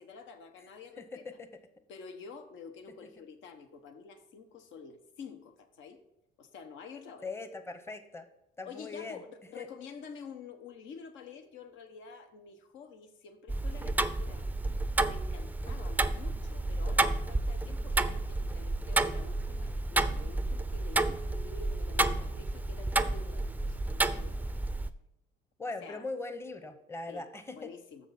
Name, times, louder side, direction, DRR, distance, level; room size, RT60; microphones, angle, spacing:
voice 1, 0.0-1.3 1.9-6.0 6.4-7.3 8.6-14.5 15.0-24.5 25.8-26.1 27.1-28.1, left 5 dB, 75° left, 8 dB, 1.1 m, -49 dB
voice 2, 1.0-1.5 7.2-8.2 8.6-9.2 9.6-9.7 25.6-27.7, left 3 dB, 15° left, 9 dB, 0.8 m, -40 dB
Tick-tock, 13.5-24.9, right 2 dB, 10° right, 0.4 m, -31 dB
7.1 x 6.2 x 5.8 m, 0.84 s
cardioid pair, 90°, 20 cm